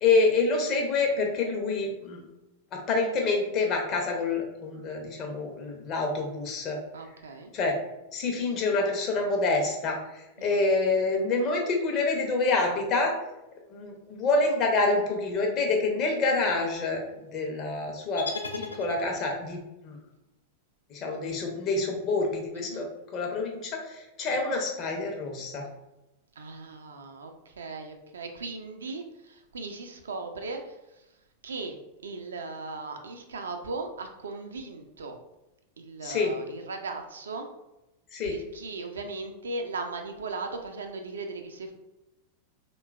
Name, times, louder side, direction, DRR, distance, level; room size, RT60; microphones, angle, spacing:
voice 1, 0.0-2.2 2.7-6.8 7.5-7.8 8.1-10.0 10.4-13.2 13.7-17.0 17.3-18.3 18.6-20.0 20.9-22.8 23.1-25.6 36.0-36.3 38.1-38.4, left 3 dB, 35° left, 1 dB, 0.6 m, -27 dB
voice 2, 6.9-7.5 10.4-10.7 22.5-22.9 26.4-31.0 31.4-35.2 35.8-37.5 38.3-41.7, right 3 dB, 70° right, 5 dB, 0.3 m, -38 dB
sound 1, 18.2-19.5, left 3 dB, 75° left, 0.3 m, -37 dB
3.1 x 2.2 x 2.2 m, 0.94 s
figure-of-eight pair, 90°, 0 cm